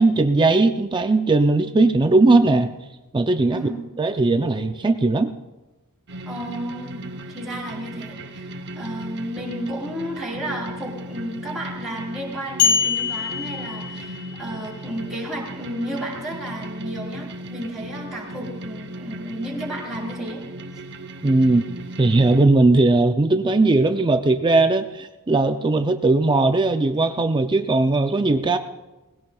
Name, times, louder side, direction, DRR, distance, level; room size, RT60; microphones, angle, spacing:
voice 1, 0.0-2.7 3.1-3.6 4.0-5.3 21.2-21.6 22.0-28.6, right 2 dB, 20° right, 8 dB, 0.4 m, -18 dB
sound 1, 6.1-22.4, right 1 dB, 50° right, 0.8 m, -36 dB
voice 2, 6.3-7.0 7.3-8.5 8.7-20.4, right 1 dB, ahead, -6 dB, 3.8 m, -32 dB
sound 2, 12.6-14.4, left 7 dB, 70° left, 2.1 m, -23 dB
19.5 x 16.5 x 2.3 m, 1.1 s
head